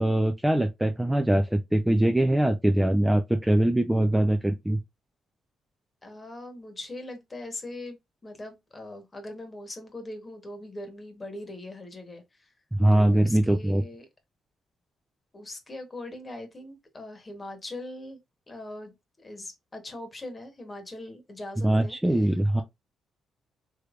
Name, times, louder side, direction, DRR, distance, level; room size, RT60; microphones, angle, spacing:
voice 1, 0.0-4.8 12.7-13.8 21.6-22.6, right 1 dB, 5° right, 0.4 m, -22 dB
voice 2, 6.0-8.0 8.2-12.5 12.9-14.1 15.3-18.2 18.5-22.3, left 1 dB, 25° left, 1.1 m, -41 dB
3.4 x 3.1 x 2.4 m
cardioid pair, 90°, 0 cm